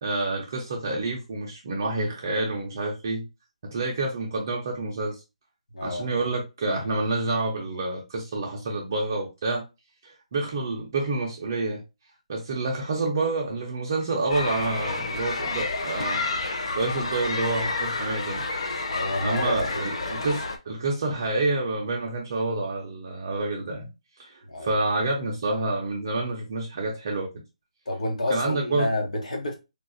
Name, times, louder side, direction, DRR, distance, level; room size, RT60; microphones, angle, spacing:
voice 1, 0.0-3.3 3.6-5.2 5.8-9.6 10.0-11.8 12.3-16.3 16.7-18.4 19.2-23.9 24.2-27.3 28.3-28.9, right 2 dB, 30° right, 0.5 m, -28 dB
voice 2, 5.7-6.3 18.9-20.2 24.5-24.7 27.9-29.6, left 2 dB, 80° left, 1.2 m, -29 dB
sound 1, 14.3-20.6, left 3 dB, 50° left, 0.5 m, -30 dB
3.4 x 2.4 x 2.6 m
hypercardioid pair, 175°, 4 cm